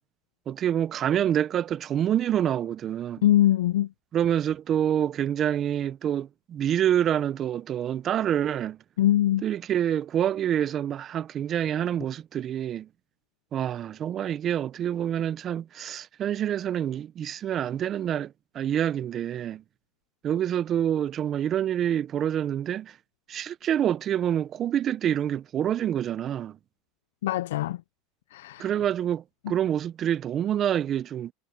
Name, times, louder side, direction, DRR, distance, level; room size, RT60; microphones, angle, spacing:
voice 1, 0.5-3.2 4.1-8.8 9.4-12.9 13.5-19.6 20.2-23.0 23.3-26.6 28.6-31.3, right 10 dB, 40° right, 0.7 m, -27 dB
voice 2, 3.2-3.9 9.0-9.4 27.2-27.8 28.3-28.7, left 13 dB, 90° left, 0.4 m, -22 dB
supercardioid pair, 115°, 0 cm